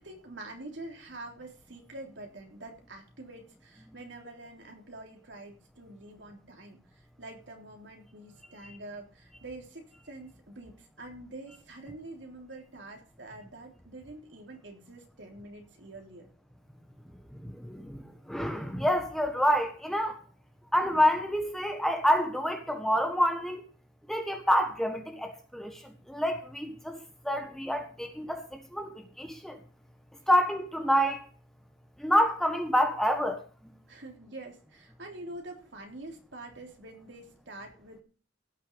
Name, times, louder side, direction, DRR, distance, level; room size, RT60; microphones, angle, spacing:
voice 1, 0.0-16.3 33.9-38.0, right 2 dB, 70° right, 3.5 m, -46 dB
voice 2, 17.3-20.2 20.7-23.6 24.1-27.0 27.2-29.6 30.3-31.2 32.0-33.4, equal, ahead, 1.4 m, -28 dB
16.5 x 6.9 x 5.3 m
head